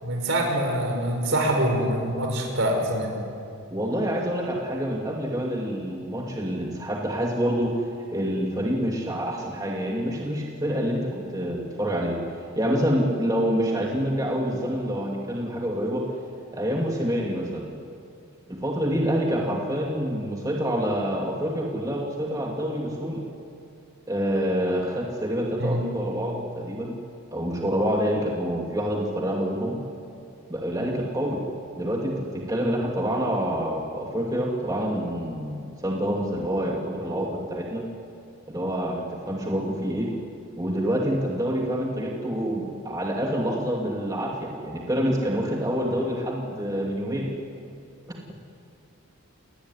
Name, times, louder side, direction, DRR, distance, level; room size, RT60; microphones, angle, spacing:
voice 1, 0.0-3.1 25.6-25.8, right 1 dB, 60° right, 3 dB, 5.7 m, -24 dB
voice 2, 3.7-12.2 12.5-16.0 16.5-17.7 18.5-23.2 24.1-27.0 27.3-29.8 30.5-31.4 31.8-37.8 38.5-40.1 40.6-47.3, equal, 15° right, -2 dB, 2.7 m, -27 dB
29.0 x 20.0 x 9.8 m, 2.5 s
head